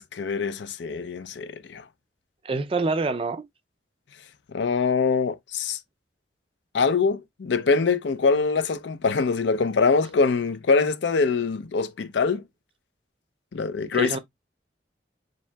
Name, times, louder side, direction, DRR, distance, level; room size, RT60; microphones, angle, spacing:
voice 1, 0.0-1.9 4.5-5.8 6.7-12.4 13.5-14.2, left 4 dB, 80° left, 0.5 m, -24 dB
voice 2, 2.4-3.4 13.8-14.2, right 3 dB, 30° right, 0.4 m, -26 dB
7.1 x 2.8 x 2.2 m
head